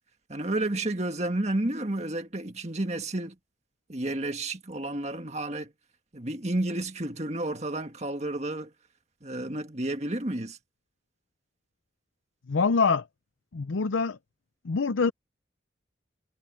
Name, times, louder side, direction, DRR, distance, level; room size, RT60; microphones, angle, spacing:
voice 1, 0.3-3.4 3.9-5.7 6.1-8.7 9.2-10.6, right 1 dB, 35° right, 1.8 m, -31 dB
voice 2, 12.5-13.1 13.5-14.2 14.6-15.1, left 4 dB, 85° left, 0.6 m, -25 dB
head